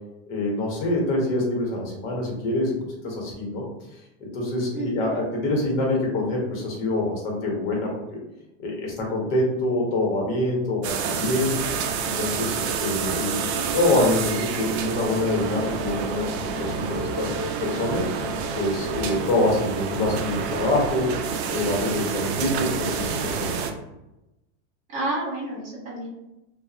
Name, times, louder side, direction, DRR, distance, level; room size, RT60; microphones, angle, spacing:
voice 1, 0.3-2.7 3.0-3.6 4.2-8.2 8.6-11.5 12.0-18.1 18.5-21.1 21.5-23.6, left 2 dB, 55° left, -2 dB, 1.1 m, -25 dB
voice 2, 4.7-5.2 24.9-26.1, right 1 dB, 20° right, -6 dB, 1.4 m, -30 dB
sound 1, 10.8-23.7, right 5 dB, 65° right, 0.5 m, -28 dB
2.7 x 2.3 x 2.4 m, 0.93 s
supercardioid pair, 165°, 36 cm